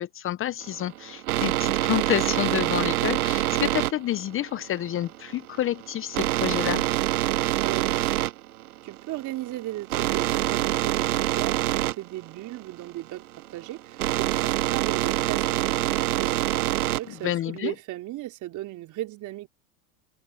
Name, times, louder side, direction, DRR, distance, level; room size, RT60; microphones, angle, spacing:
voice 1, 0.0-6.8 17.2-17.7, left 12 dB, 30° left, 0.9 m, -29 dB
sound 1, 0.6-17.2, right 15 dB, 80° right, 0.8 m, -26 dB
voice 2, 7.4-8.2 8.8-13.3 13.5-19.5, right 16 dB, 40° right, 3.9 m, -36 dB
hypercardioid pair, 105°, 44 cm